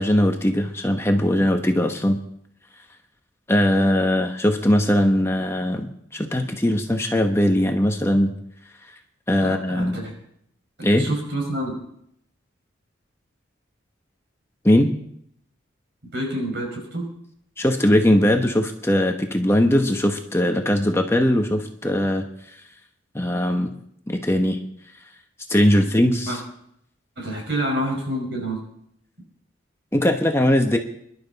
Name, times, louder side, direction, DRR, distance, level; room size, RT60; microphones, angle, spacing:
voice 1, 0.0-2.2 3.5-8.3 9.3-10.0 10.8-11.1 14.6-14.9 17.6-22.2 23.1-23.7 24.1-24.6 25.5-26.4 29.9-30.8, left 1 dB, 15° left, 4 dB, 1.0 m, -20 dB
voice 2, 9.4-10.1 10.9-11.7 16.1-17.1 26.3-26.4 27.2-28.6, right 1 dB, 60° right, 1 dB, 5.3 m, -27 dB
24.5 x 12.0 x 4.1 m, 0.71 s
head